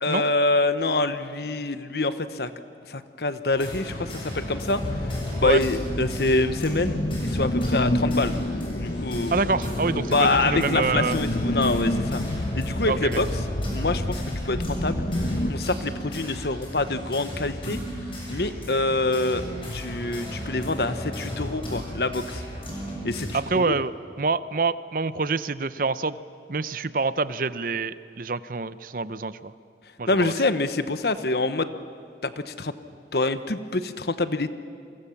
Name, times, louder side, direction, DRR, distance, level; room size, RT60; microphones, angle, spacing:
voice 1, 0.0-2.5 2.9-5.1 5.4-8.4 8.8-9.4 10.1-12.2 12.5-13.4 13.7-17.8 18.3-19.4 19.7-22.4 23.0-23.8 30.1-31.7 32.2-32.7 33.1-34.5, left 2 dB, 65° left, 11 dB, 1.1 m, -26 dB
sound 1, 3.5-23.4, equal, 30° left, 7.2 m, -35 dB
Wavy Engine Sound, 4.8-15.5, left 1 dB, 45° left, 1.0 m, -29 dB
voice 2, 9.3-11.2 12.9-13.2 23.3-23.9 24.2-26.2 26.5-29.5 30.0-30.3, right 4 dB, 50° right, 15 dB, 0.7 m, -26 dB
29.5 x 23.5 x 7.2 m, 2.3 s
head